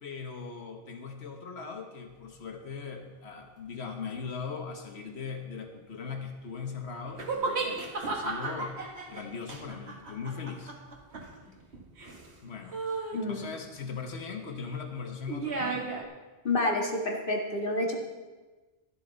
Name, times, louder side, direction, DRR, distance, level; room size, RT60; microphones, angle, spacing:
voice 1, 0.0-8.8 9.1-10.7 12.4-15.9, left 5 dB, 80° left, 4 dB, 1.6 m, -39 dB
sound 1, 7.2-12.4 12.7-13.2 15.3-16.0, right 3 dB, 85° right, 1.9 m, -34 dB
voice 2, 13.1-13.4 16.4-18.0, left 2 dB, 55° left, 1 dB, 2.0 m, -28 dB
14.0 x 12.5 x 4.1 m, 1.3 s
omnidirectional pair, 1.1 m